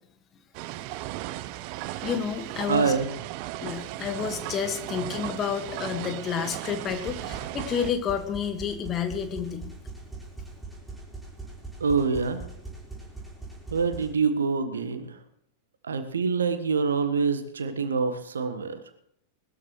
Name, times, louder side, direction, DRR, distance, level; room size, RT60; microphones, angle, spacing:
sound 1, 0.5-7.9, right 15 dB, 45° right, 0.5 m, -36 dB
voice 1, 2.0-2.9 3.6-9.7, left 7 dB, 30° left, 6 dB, 1.8 m, -30 dB
voice 2, 2.7-3.1 11.8-12.4 13.7-15.2 15.8-18.8, right 5 dB, 70° right, 10 dB, 1.3 m, -26 dB
sound 2, 6.9-14.1, right 3 dB, 5° right, 4.3 m, -42 dB
20.0 x 13.5 x 3.2 m, 0.68 s
figure-of-eight pair, 90°, 0 cm